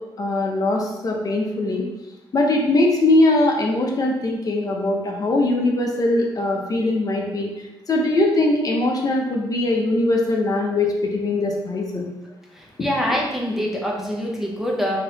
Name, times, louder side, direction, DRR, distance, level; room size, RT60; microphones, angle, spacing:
voice 1, 0.2-1.8 2.3-7.5 7.9-12.1, left 2 dB, 45° left, 0 dB, 0.7 m, -21 dB
voice 2, 12.5-15.0, equal, 5° right, -2 dB, 0.6 m, -25 dB
3.7 x 2.9 x 4.0 m, 1.0 s
wide cardioid pair, 115°, 9 cm